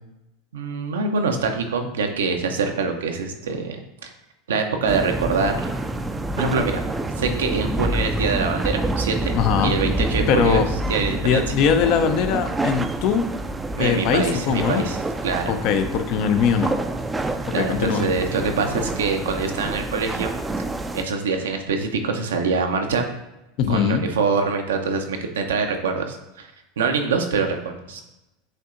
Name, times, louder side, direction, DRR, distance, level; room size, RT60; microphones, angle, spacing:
voice 1, 0.5-4.1 4.5-5.7 6.4-6.8 7.2-9.3 9.6-10.6 10.9-11.4 13.8-15.0 15.2-15.5 17.5-20.3 20.9-23.0 23.7-26.5 26.8-28.0, right 4 dB, 80° right, 5 dB, 0.6 m, -24 dB
sound 1, 4.9-21.0, right 1 dB, 15° right, 0.3 m, -27 dB
voice 2, 9.3-9.8 10.3-10.7 11.2-13.3 13.8-14.8 15.5-16.8 17.5-18.1 23.6-24.0, left 7 dB, 55° left, 9 dB, 0.5 m, -21 dB
7.7 x 2.7 x 2.5 m, 0.93 s
hypercardioid pair, 90°, 0 cm